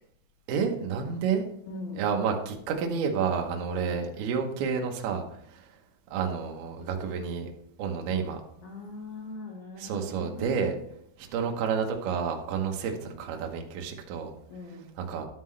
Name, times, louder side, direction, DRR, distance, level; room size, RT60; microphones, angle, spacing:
voice 1, 0.5-1.4 2.0-5.2 5.5-5.6 6.1-7.5 7.8-8.4 9.8-10.8 11.2-14.3 15.0-15.3, right 6 dB, 80° right, 2 dB, 2.3 m, -30 dB
voice 2, 1.7-2.0 3.7-4.0 8.6-10.7 14.5-14.9, left 3 dB, 65° left, -4 dB, 2.3 m, -41 dB
12.0 x 5.6 x 3.2 m, 0.69 s
omnidirectional pair, 5.9 m